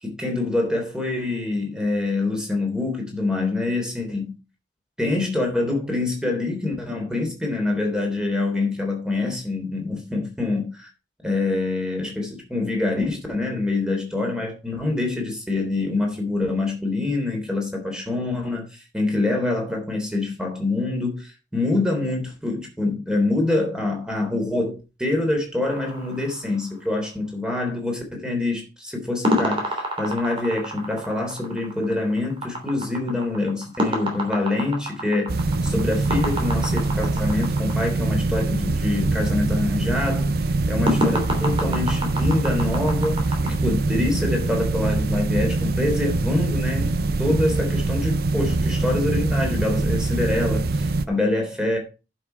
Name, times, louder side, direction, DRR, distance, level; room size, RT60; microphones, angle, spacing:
voice 1, 0.0-4.4 5.0-10.9 11.2-51.8, left 2 dB, 5° right, 3.5 m, -25 dB
sound 1, 25.7-27.0 29.2-37.9 40.9-43.5, equal, 30° right, 3.1 m, -28 dB
sound 2, 35.3-51.1, right 2 dB, 60° right, 0.7 m, -23 dB
11.0 x 6.3 x 4.7 m
head